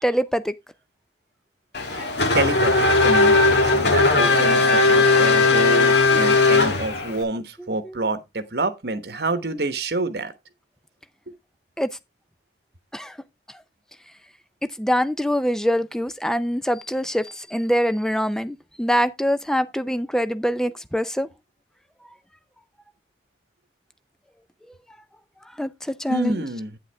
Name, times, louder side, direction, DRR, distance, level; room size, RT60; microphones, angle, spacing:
voice 1, 0.0-0.5 11.8-11.9 12.9-13.1 14.8-21.3 25.6-25.7 26.0-26.4, equal, 5° left, 0.5 m, -24 dB
Race car auto racing / Accelerating revving vroom, 1.7-7.2, left 3 dB, 75° left, 1.6 m, -18 dB
voice 2, 2.3-10.3 26.1-26.8, right 2 dB, 65° right, 1.2 m, -28 dB
9.0 x 8.2 x 3.4 m
head